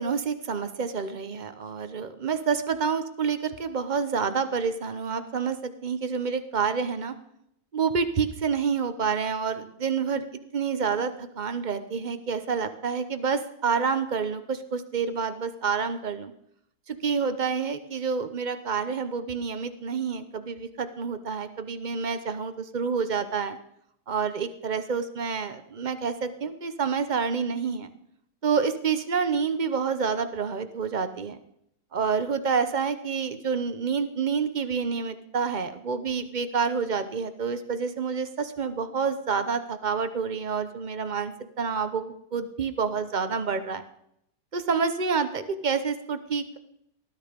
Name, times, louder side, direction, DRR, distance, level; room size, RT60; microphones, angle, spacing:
voice 1, 0.0-7.1 7.7-10.2 10.5-16.3 16.9-23.6 24.1-27.9 28.4-31.4 31.9-43.8 44.5-46.6, right 5 dB, 75° right, 10 dB, 0.4 m, -28 dB
19.5 x 12.5 x 5.2 m, 0.75 s
omnidirectional pair, 2.3 m